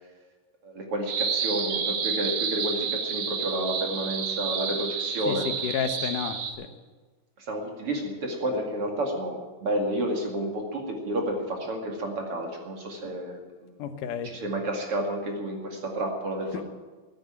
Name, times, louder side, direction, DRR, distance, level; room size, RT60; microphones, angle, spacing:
voice 1, 0.6-5.4 7.4-13.8 14.2-16.6, right 1 dB, 45° right, 1 dB, 2.9 m, -30 dB
sound 1, 1.1-6.5, right 6 dB, 90° right, 3.3 m, -30 dB
voice 2, 5.3-6.7 13.8-14.3 16.5-16.6, left 8 dB, 75° left, 8 dB, 2.6 m, -31 dB
16.0 x 9.5 x 8.9 m, 1.3 s
omnidirectional pair, 3.9 m